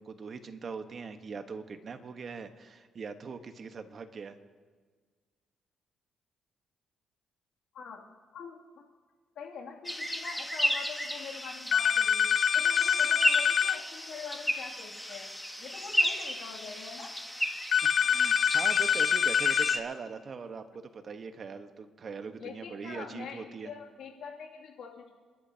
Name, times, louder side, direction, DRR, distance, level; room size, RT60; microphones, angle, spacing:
voice 1, 0.0-4.4 18.0-23.7, right 5 dB, 45° right, 7 dB, 1.2 m, -41 dB
voice 2, 9.3-15.3 15.6-17.1 22.4-25.1, left 6 dB, 75° left, -1 dB, 2.5 m, -44 dB
sound 1, 9.8-19.8, equal, 5° left, 1.3 m, -34 dB
sound 2, 11.7-13.8 17.7-19.8, left 8 dB, 55° left, 0.4 m, -25 dB
29.0 x 12.0 x 2.8 m, 1.5 s
cardioid pair, 90°, 0 cm